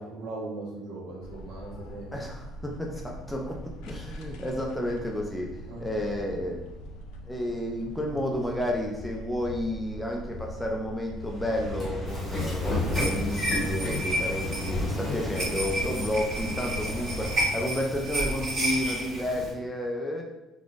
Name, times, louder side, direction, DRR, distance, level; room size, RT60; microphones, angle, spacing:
voice 1, 0.0-2.1 5.7-6.2, right 2 dB, 75° right, -5 dB, 1.1 m, -38 dB
sound 1, 1.2-17.4, equal, 85° left, 0.4 m, -42 dB
voice 2, 2.1-5.5 5.8-6.6 7.3-20.3, left 1 dB, 5° left, 0 dB, 0.3 m, -31 dB
Train / Sliding door, 11.2-17.8, left 1 dB, 20° left, 0.8 m, -32 dB
sound 2, 12.1-19.5, right 1 dB, 40° right, 1.3 m, -32 dB
3.5 x 2.5 x 2.4 m, 1.0 s
cardioid pair, 165°, 0 cm